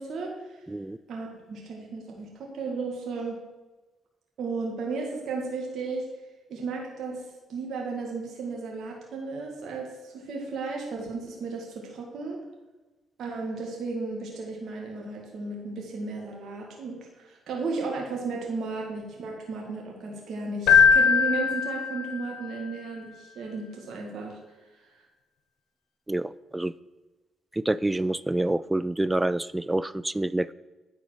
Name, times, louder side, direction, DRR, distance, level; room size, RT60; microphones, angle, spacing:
voice 1, 0.0-0.6 1.1-3.4 4.4-6.1 6.5-7.2 7.5-12.4 13.2-24.4, right 3 dB, 65° right, -1 dB, 1.8 m, -34 dB
voice 2, 0.7-1.0 26.1-26.7 27.5-30.5, right 1 dB, 15° right, 17 dB, 0.4 m, -27 dB
Keyboard (musical), 20.7-22.5, left 6 dB, 75° left, 0.8 m, -20 dB
9.8 x 4.1 x 6.2 m, 1.2 s
supercardioid pair, 65°, 0 cm